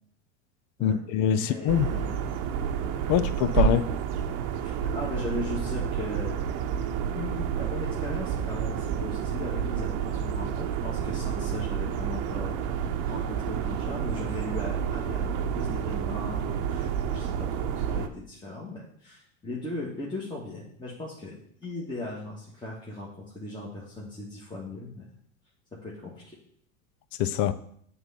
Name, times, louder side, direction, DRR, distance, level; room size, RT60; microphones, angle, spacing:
voice 1, 0.8-1.9 3.1-3.8 27.2-27.5, left 10 dB, 50° left, 14 dB, 0.6 m, -24 dB
voice 2, 1.4-2.2 3.1-3.3 4.6-6.4 7.1-12.8 13.0-25.0 25.8-26.4, left 2 dB, 10° left, -5 dB, 1.7 m, -38 dB
sound 1, 1.7-18.1, right 8 dB, 50° right, 0.9 m, -29 dB
7.9 x 4.0 x 5.7 m, 0.66 s
hypercardioid pair, 105°, 40 cm